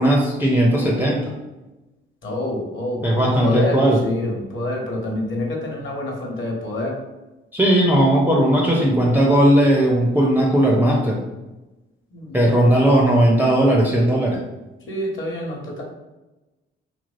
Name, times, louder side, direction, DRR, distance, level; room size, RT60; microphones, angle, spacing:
voice 1, 0.0-1.3 3.0-4.0 7.5-11.2 12.3-14.4, right 1 dB, 5° right, -2 dB, 0.5 m, -17 dB
voice 2, 2.2-7.0 12.1-12.5 14.9-15.8, left 1 dB, 40° left, -1 dB, 1.0 m, -27 dB
2.8 x 2.5 x 2.5 m, 1.0 s
figure-of-eight pair, 45°, 30 cm